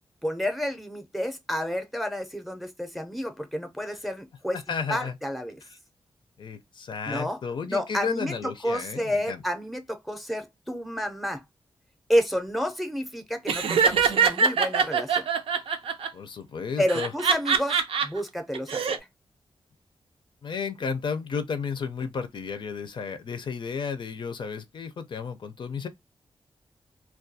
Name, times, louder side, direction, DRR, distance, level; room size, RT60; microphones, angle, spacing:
voice 1, 0.2-4.6 4.9-5.6 7.1-7.4 7.7-11.4 12.1-15.3 16.8-19.1, equal, ahead, 0.5 m, -30 dB
voice 2, 4.5-5.2 5.6-5.7 6.4-9.4 16.1-17.1 20.4-25.9, left 5 dB, 60° left, 0.4 m, -33 dB
Laughter, 13.5-16.1 16.9-18.1 18.5-19.0, right 6 dB, 90° right, 0.4 m, -23 dB
2.3 x 2.2 x 2.6 m
wide cardioid pair, 90°, 9 cm